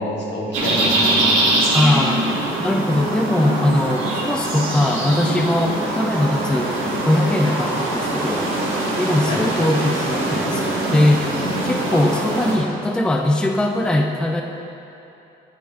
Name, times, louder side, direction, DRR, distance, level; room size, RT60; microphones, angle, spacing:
voice 1, 0.0-1.8 9.3-9.4 11.9-12.0, left 1 dB, 65° left, -4 dB, 1.8 m, -28 dB
sound 1, 0.5-12.6, right 1 dB, 85° right, 1.9 m, -22 dB
voice 2, 1.7-2.2 2.6-6.7 7.0-8.5 9.0-11.3 11.6-14.4, left 1 dB, 5° left, 2 dB, 0.5 m, -20 dB
10.0 x 9.3 x 2.4 m, 2.9 s
cardioid pair, 90°, 20 cm